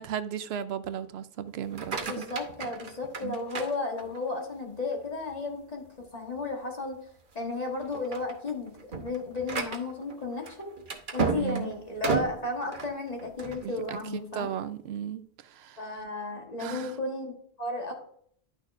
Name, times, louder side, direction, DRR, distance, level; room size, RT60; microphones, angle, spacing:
voice 1, 0.0-2.2 3.2-3.4 11.4-11.7 13.6-14.0 14.3-15.8 16.6-17.0, right 9 dB, 80° right, 0.8 m, -35 dB
sound 1, 1.6-4.4 4.9-5.4 5.8-5.9 6.3-6.5 7.2-7.5 7.8-13.7, right 5 dB, 55° right, 1.1 m, -34 dB
voice 2, 2.1-7.0 7.3-10.7 11.1-14.5 15.8-17.9, left 3 dB, 40° left, 1.5 m, -34 dB
10.5 x 6.3 x 2.6 m
omnidirectional pair, 1.1 m